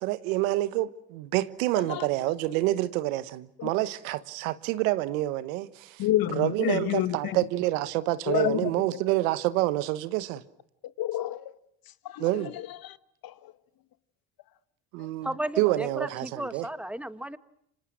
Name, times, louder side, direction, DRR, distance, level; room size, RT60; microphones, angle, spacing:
voice 1, 0.0-6.0 6.4-10.4 12.2-12.5 14.9-15.3 15.6-16.7, right 16 dB, 85° right, 1.3 m, -27 dB
voice 2, 1.7-2.1 3.6-3.7 6.0-7.4 8.3-9.0 11.0-11.6 12.0-13.0 13.2-13.5 15.0-15.1, left 14 dB, 60° left, 1.5 m, -30 dB
voice 3, 15.2-17.4, right 1 dB, 5° right, 1.5 m, -34 dB
29.0 x 26.0 x 6.3 m
hypercardioid pair, 70°, 40 cm